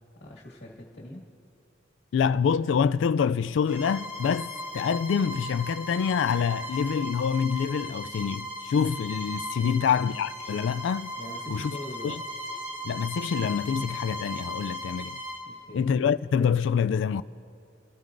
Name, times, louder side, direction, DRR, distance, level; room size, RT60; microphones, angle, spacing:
voice 1, 0.1-1.2 9.6-9.9 11.2-12.2 15.5-15.8, left 1 dB, 55° left, 1.7 m, -42 dB
voice 2, 2.1-11.1 11.5-11.8 12.0-12.2 12.8-15.2 15.7-17.2, left 7 dB, 70° left, 0.3 m, -26 dB
Bowed string instrument, 3.7-15.5, left 1 dB, 15° right, 2.6 m, -37 dB
29.0 x 14.0 x 2.6 m
head